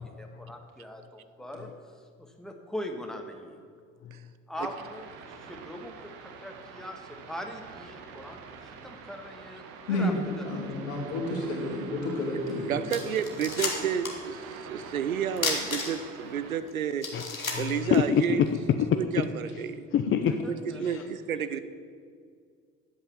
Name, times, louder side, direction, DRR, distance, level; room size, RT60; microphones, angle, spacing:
voice 1, 0.0-1.7 2.2-3.6 4.5-10.7 20.3-21.1, left 1 dB, ahead, 4 dB, 1.5 m, -41 dB
sound 1, 4.5-16.6, right 5 dB, 55° right, 1.3 m, -46 dB
voice 2, 9.9-10.2 10.4-12.8, left 1 dB, 70° left, -3 dB, 2.9 m, -30 dB
sound 2, 12.5-12.6 12.9-14.3 14.5-14.6 15.4-16.2 16.7-16.8 17.0-18.5, left 4 dB, 85° left, 1.4 m, -32 dB
voice 3, 12.6-17.1 17.6-18.4 18.9-19.9 20.5-21.6, right 8 dB, 85° right, 12 dB, 0.6 m, -31 dB
voice 4, 17.1-19.2 19.5-19.7 19.9-20.4 20.8-21.1, left 8 dB, 30° left, 7 dB, 0.7 m, -26 dB
11.0 x 8.2 x 7.1 m, 2.1 s
figure-of-eight pair, 55°, 40 cm